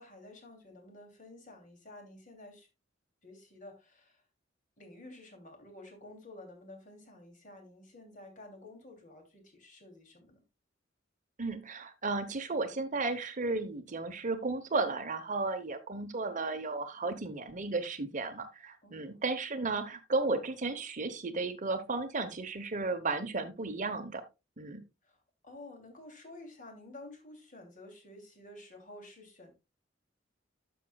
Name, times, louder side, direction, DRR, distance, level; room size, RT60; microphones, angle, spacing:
voice 1, 0.0-2.7 3.2-4.2 4.8-10.4 18.8-19.2 25.0-25.2 25.4-29.5, left 2 dB, 45° left, 3.0 m, -51 dB
voice 2, 11.4-24.2 24.6-24.8, right 3 dB, 40° right, 1.0 m, -34 dB
12.5 x 6.2 x 2.3 m
head